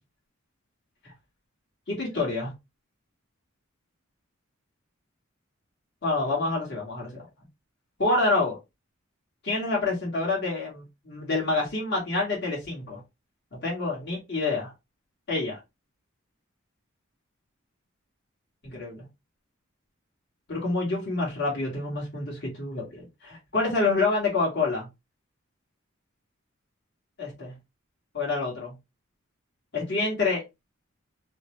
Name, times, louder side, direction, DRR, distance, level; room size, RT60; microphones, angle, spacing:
voice 1, 1.9-2.5 6.0-7.2 8.0-8.6 9.4-13.0 13.6-14.7 15.3-15.6 18.6-19.0 20.5-24.9 27.2-27.5 28.1-28.7 29.7-30.4, left 3 dB, 55° left, 1.3 m, -27 dB
2.7 x 2.0 x 2.9 m
head